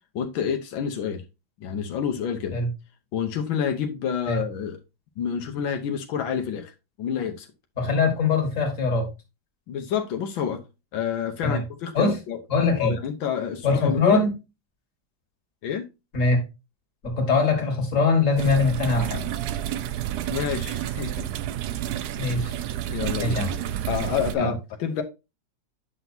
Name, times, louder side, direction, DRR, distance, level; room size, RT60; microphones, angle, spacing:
voice 1, 0.1-1.2 1.6-2.6 3.1-4.8 5.2-6.7 7.0-7.5 9.7-10.6 10.9-12.4 12.8-14.3 15.6-15.9 20.3-21.2 22.9-23.4 23.9-25.0, left 8 dB, 85° left, 1.6 m, -28 dB
voice 2, 7.8-9.1 11.4-11.6 11.9-12.1 12.5-12.9 13.6-14.3 16.1-16.4 17.0-19.3 22.2-22.5 23.2-23.5 24.4-24.5, left 3 dB, 40° left, 2.2 m, -22 dB
sound 1, 18.4-24.3, right 11 dB, 70° right, 1.0 m, -30 dB
9.4 x 5.9 x 2.7 m
omnidirectional pair, 2.1 m